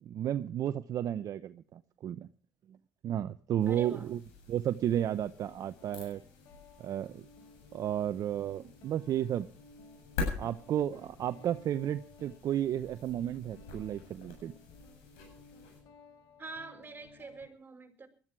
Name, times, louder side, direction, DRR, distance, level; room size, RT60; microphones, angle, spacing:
voice 1, 0.0-2.3 3.0-4.2 4.5-6.2 6.8-7.2 7.7-9.5 10.4-14.5, right 10 dB, 60° right, 0.8 m, -33 dB
sound 1, 3.6-15.8, left 4 dB, 85° left, 7.8 m, -45 dB
voice 2, 3.6-4.1 16.4-18.1, right 4 dB, 30° right, 5.0 m, -45 dB
Guitar, 4.8-17.5, left 3 dB, 65° left, 3.5 m, -58 dB
20.0 x 13.0 x 4.7 m
supercardioid pair, 65°, 7 cm